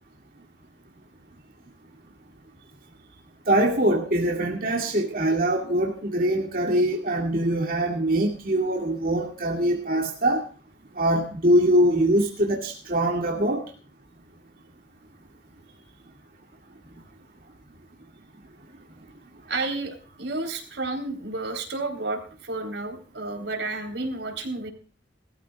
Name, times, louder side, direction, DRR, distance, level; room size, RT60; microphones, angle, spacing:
voice 1, 3.5-10.4 11.0-13.7, right 1 dB, 55° right, 1 dB, 2.2 m, -23 dB
voice 2, 19.5-24.7, right 2 dB, 90° right, 5 dB, 3.8 m, -31 dB
21.0 x 14.0 x 2.3 m, 0.39 s
head